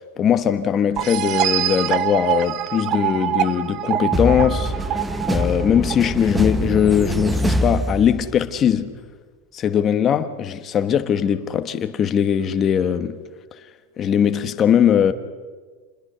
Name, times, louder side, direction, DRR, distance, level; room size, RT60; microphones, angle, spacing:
voice 1, 0.0-4.7 5.3-8.9 9.5-13.2 14.0-15.1, left 8 dB, 25° left, 1.1 m, -20 dB
sound 1, 1.0-6.4, right 12 dB, 35° right, 0.7 m, -24 dB
sound 2, 4.1-8.6, equal, 5° right, 0.9 m, -24 dB
28.0 x 21.0 x 6.8 m
supercardioid pair, 165°, 0 cm